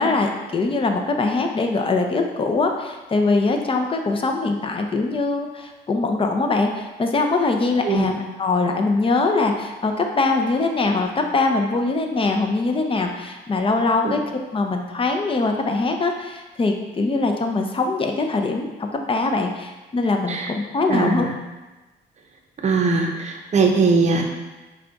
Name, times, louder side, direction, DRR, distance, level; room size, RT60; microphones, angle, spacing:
voice 1, 0.0-21.3, left 3 dB, 25° left, 4 dB, 0.5 m, -22 dB
voice 2, 20.9-21.3 22.6-24.2, right 4 dB, 35° right, 1 dB, 0.7 m, -20 dB
4.8 x 2.3 x 3.9 m, 1.1 s
cardioid pair, 90°, 20 cm